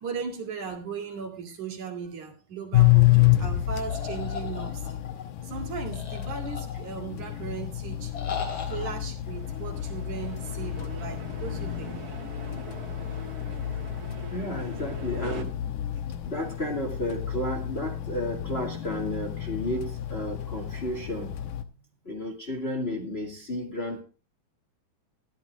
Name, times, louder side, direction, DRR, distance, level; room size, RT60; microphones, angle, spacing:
voice 1, 0.0-4.8 5.4-8.1 8.7-12.0 13.1-13.2, right 6 dB, 70° right, 3 dB, 3.8 m, -37 dB
sound 1, 2.7-21.6, left 14 dB, 75° left, 2.5 m, -29 dB
sound 2, 3.9-5.2 5.9-7.1 8.1-8.9, left 6 dB, 40° left, 3.4 m, -37 dB
sound 3, 9.3-15.4, right 5 dB, 40° right, 1.6 m, -43 dB
voice 2, 14.3-15.6 16.0-21.4 22.0-24.0, left 1 dB, 20° left, 2 dB, 2.1 m, -32 dB
15.0 x 12.0 x 3.6 m, 0.33 s
omnidirectional pair, 3.7 m